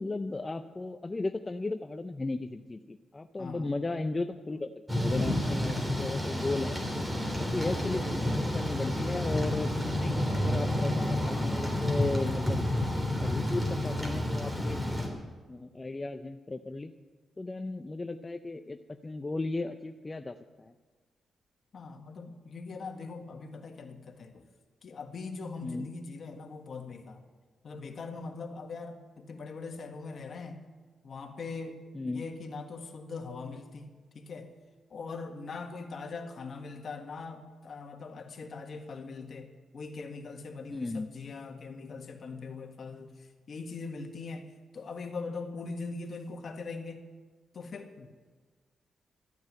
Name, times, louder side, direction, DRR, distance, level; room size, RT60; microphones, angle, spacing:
voice 1, 0.0-6.8 7.3-12.6 13.2-14.8 15.5-16.9 17.4-20.7 25.6-25.9 31.9-32.2 40.7-41.1, left 2 dB, 25° left, 7 dB, 0.6 m, -35 dB
voice 2, 3.4-3.7 21.7-24.4 24.8-27.3 27.6-30.6 31.0-31.8 32.0-34.5 34.9-47.0 47.5-48.1, left 4 dB, 55° left, 4 dB, 1.7 m, -41 dB
Thunder / Rain, 4.9-15.1, left 1 dB, 15° right, 3.5 m, -30 dB
13.5 x 9.4 x 9.0 m, 1.4 s
cardioid pair, 95°, 0 cm